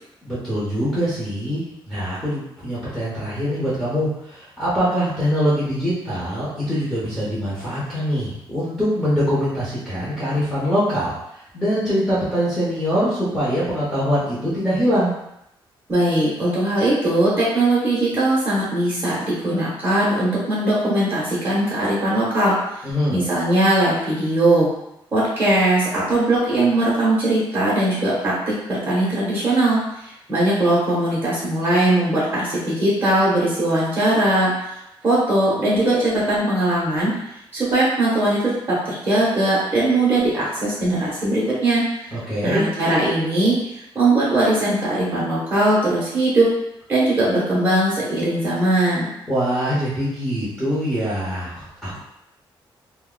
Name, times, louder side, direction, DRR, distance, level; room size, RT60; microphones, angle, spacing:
voice 1, 0.2-11.2 11.5-15.1 22.8-23.2 42.1-42.6 49.3-52.0, equal, 10° left, -10 dB, 0.9 m, -23 dB
voice 2, 15.9-22.6 23.1-24.7 25.1-34.5 35.0-37.1 37.5-42.1 42.4-43.6 43.9-46.5 46.9-49.1, right 1 dB, 25° right, -7 dB, 0.9 m, -20 dB
2.7 x 2.2 x 3.7 m, 0.82 s
wide cardioid pair, 165°, 9 cm